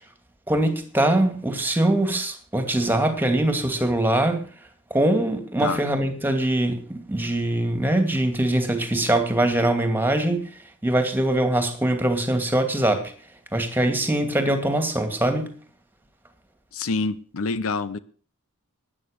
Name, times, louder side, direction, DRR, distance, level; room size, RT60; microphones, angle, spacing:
voice 1, 0.5-4.4 4.9-10.5 10.8-13.1 13.5-15.5, right 1 dB, 10° right, 2.4 m, -22 dB
voice 2, 16.7-18.0, left 3 dB, 65° left, 0.7 m, -26 dB
13.0 x 10.0 x 6.5 m
head